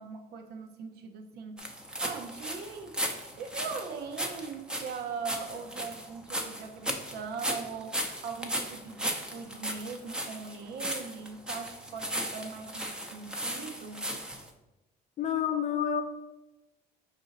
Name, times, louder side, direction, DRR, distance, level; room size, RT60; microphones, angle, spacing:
voice 1, 0.0-1.6 2.0-3.0 3.3-14.1, right 5 dB, 70° right, 5 dB, 0.6 m, -40 dB
sound 1, 1.6-14.5, equal, 5° right, 0.6 m, -36 dB
voice 2, 15.2-16.0, left 8 dB, 45° left, 7 dB, 0.4 m, -28 dB
4.8 x 2.6 x 4.0 m, 1.0 s
cardioid pair, 110°, 17 cm